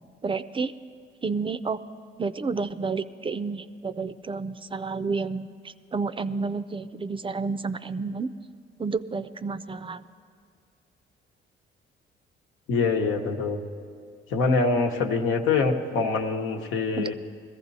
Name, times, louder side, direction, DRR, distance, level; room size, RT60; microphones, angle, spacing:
voice 1, 0.2-0.7 1.2-1.8 2.2-8.3 8.8-10.0 17.0-17.1, right 4 dB, 25° right, 13 dB, 0.4 m, -30 dB
voice 2, 12.7-13.6 14.3-17.1, left 4 dB, 85° left, 3 dB, 1.1 m, -24 dB
21.0 x 14.5 x 4.1 m, 2.2 s
cardioid pair, 90°, 20 cm